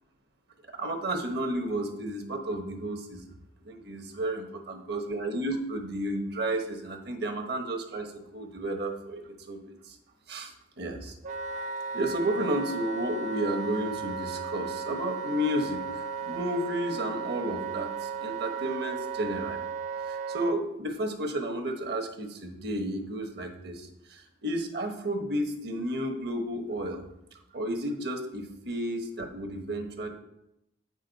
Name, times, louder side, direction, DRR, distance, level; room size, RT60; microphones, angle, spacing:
voice 1, 0.7-3.2 3.6-10.0 10.3-11.1 11.9-15.8 16.2-19.6 20.1-27.0 27.5-30.1, right 1 dB, 65° right, 5 dB, 1.1 m, -32 dB
Wind instrument woodwind instrument, 11.2-20.6, right 5 dB, 45° right, 0.4 m, -35 dB
8.4 x 6.3 x 4.0 m, 0.84 s
head